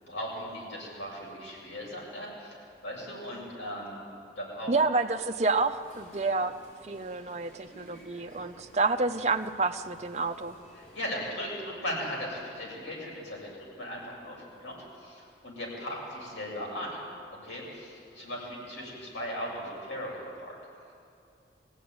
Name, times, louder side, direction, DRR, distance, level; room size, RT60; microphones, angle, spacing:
voice 1, 0.0-4.0 4.4-4.7 10.8-13.5 13.8-17.0 17.4-20.6, equal, 90° left, -3 dB, 7.2 m, -38 dB
voice 2, 4.7-6.5 6.8-10.6, right 3 dB, 35° right, 6 dB, 0.8 m, -29 dB
sound 1, 5.0-11.0, equal, 40° left, 7.7 m, -54 dB
23.5 x 16.5 x 9.5 m, 2.5 s
head